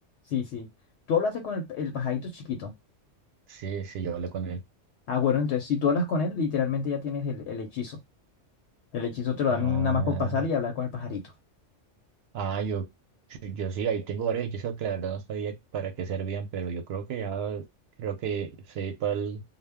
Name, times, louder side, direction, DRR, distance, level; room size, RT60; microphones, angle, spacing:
voice 1, 0.3-0.7 1.1-2.7 5.1-8.0 8.9-11.2, left 6 dB, 70° left, 0.9 m, -27 dB
voice 2, 3.5-4.6 9.5-10.4 12.3-12.9 13.3-17.7 18.0-19.4, right 7 dB, 65° right, 0.7 m, -32 dB
2.1 x 2.1 x 3.3 m
omnidirectional pair, 1.3 m